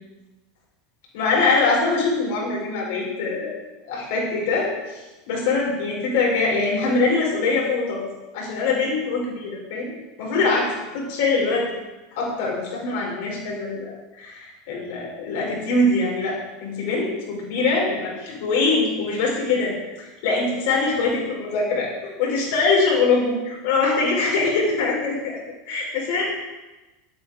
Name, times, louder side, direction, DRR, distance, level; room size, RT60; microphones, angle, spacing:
voice 1, 1.1-3.6 3.9-8.0 8.3-11.7 12.1-25.4 25.7-26.2, left 3 dB, 55° left, -3 dB, 5.4 m, -23 dB
12.5 x 10.5 x 5.1 m, 1.1 s
figure-of-eight pair, 80°, 0 cm